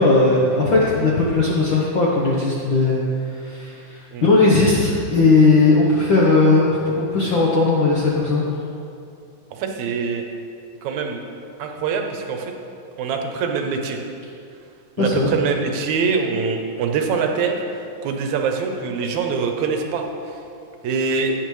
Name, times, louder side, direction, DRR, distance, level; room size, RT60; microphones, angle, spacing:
voice 1, 0.0-8.4 15.0-15.3, left 3 dB, 65° left, -5 dB, 1.2 m, -17 dB
voice 2, 9.5-10.3 10.8-11.2 11.6-12.5 13.0-14.0 15.0-17.6 18.0-20.0 20.8-21.4, right 5 dB, 75° right, 4 dB, 2.1 m, -24 dB
15.0 x 8.7 x 3.2 m, 2.5 s
omnidirectional pair, 3.6 m